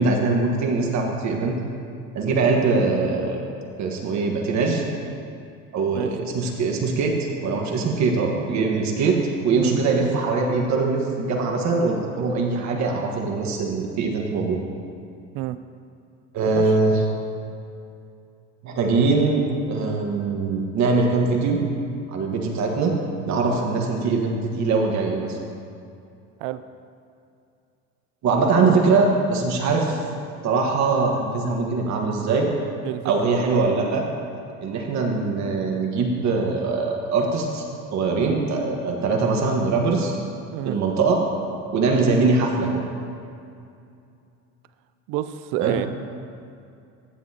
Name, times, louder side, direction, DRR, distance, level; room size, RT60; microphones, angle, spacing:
voice 1, 0.0-1.6 2.1-3.4 3.8-4.8 5.7-7.1 7.4-9.2 9.4-14.6 16.3-17.0 18.6-21.6 22.1-23.0 23.3-25.4 28.2-30.0 30.4-32.5 33.0-34.0 34.6-37.6 37.9-40.2 40.6-41.2 41.7-42.8 45.6-45.8, right 4 dB, 55° right, 1 dB, 1.5 m, -22 dB
voice 2, 45.1-45.9, right 14 dB, 75° right, 13 dB, 0.5 m, -28 dB
14.5 x 7.2 x 2.9 m, 2.5 s
supercardioid pair, 105°, 33 cm